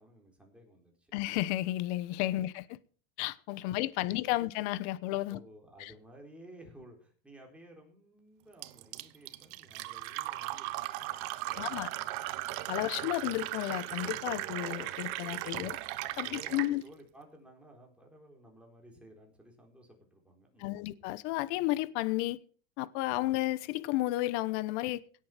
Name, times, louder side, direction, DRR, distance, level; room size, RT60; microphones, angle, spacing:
voice 1, 0.0-1.1 2.3-2.5 3.6-4.5 5.3-13.1 16.2-21.1, right 1 dB, 5° right, 4.1 m, -56 dB
voice 2, 1.1-2.8 3.2-5.4 5.8-5.9 11.6-11.9 12.7-15.8 16.2-16.8 20.6-22.4 22.8-25.0, left 17 dB, 55° left, 1.1 m, -32 dB
Fill (with liquid), 8.6-16.7, right 17 dB, 55° right, 1.2 m, -37 dB
17.0 x 8.7 x 5.9 m
supercardioid pair, 160°, 40 cm